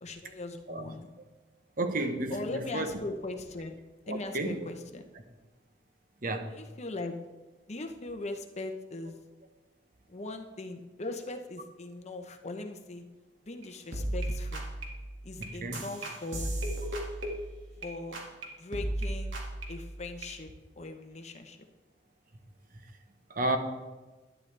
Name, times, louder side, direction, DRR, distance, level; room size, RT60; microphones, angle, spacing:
voice 1, 0.0-1.1 2.3-3.8 4.1-5.0 6.5-7.2 7.7-9.2 10.1-13.0 13.5-14.7 15.2-16.5 17.8-18.2 18.5-19.4 19.7-21.6, left 2 dB, 35° left, 0.9 m, -39 dB
voice 2, 1.8-2.9 4.1-4.6 6.2-6.5 15.4-15.8 23.3-23.6, right 2 dB, 50° right, 1.0 m, -32 dB
sound 1, 13.6-13.7 13.9-17.9 18.1-18.4 18.7-20.3, right 1 dB, 85° right, 2.1 m, -35 dB
11.5 x 11.0 x 3.4 m
head